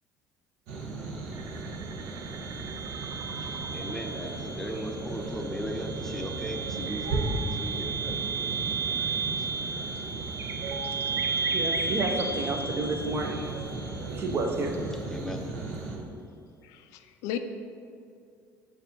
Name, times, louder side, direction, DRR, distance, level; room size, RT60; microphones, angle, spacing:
sound 1, 0.7-16.0, right 3 dB, 80° right, 0.9 m, -36 dB
sound 2, 1.3-14.3, right 4 dB, 60° right, 0.4 m, -34 dB
voice 1, 3.4-9.1 9.4-9.5 14.9-15.5, left 1 dB, 10° left, 4 dB, 0.6 m, -38 dB
voice 2, 10.4-15.1 15.9-16.1, right 2 dB, 45° right, 3 dB, 0.8 m, -32 dB
voice 3, 16.6-17.4, left 11 dB, 80° left, 8 dB, 0.4 m, -35 dB
6.8 x 2.7 x 5.2 m, 2.4 s
supercardioid pair, 90°, 5 cm